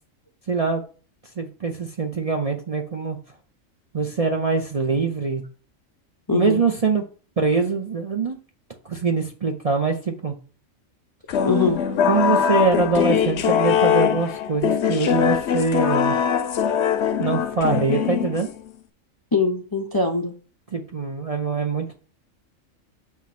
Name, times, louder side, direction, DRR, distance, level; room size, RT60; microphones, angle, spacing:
voice 1, 0.5-0.8 1.4-3.2 3.9-5.4 6.3-7.0 7.4-8.4 8.8-10.3 12.1-16.2 17.2-18.5 20.7-21.9, right 4 dB, 40° right, 2 dB, 0.6 m, -23 dB
voice 2, 6.3-6.6 11.4-11.8 19.3-20.3, left 3 dB, 30° left, 4 dB, 0.4 m, -22 dB
sound 1, 11.3-18.7, left 8 dB, 60° left, 0.9 m, -22 dB
7.3 x 3.1 x 5.8 m, 0.39 s
omnidirectional pair, 1.4 m